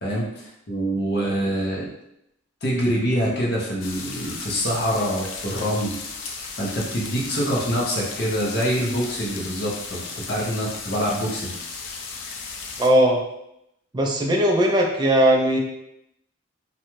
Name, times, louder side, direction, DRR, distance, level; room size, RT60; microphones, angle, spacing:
voice 1, 0.0-1.9 2.6-6.0 6.6-11.5, equal, 50° left, -4 dB, 0.7 m, -25 dB
sound 1, 3.8-12.9, left 4 dB, 75° left, 0.4 m, -35 dB
voice 2, 12.8-13.2 13.9-15.6, right 1 dB, 20° right, 0 dB, 0.3 m, -19 dB
2.5 x 2.2 x 3.0 m, 0.80 s
head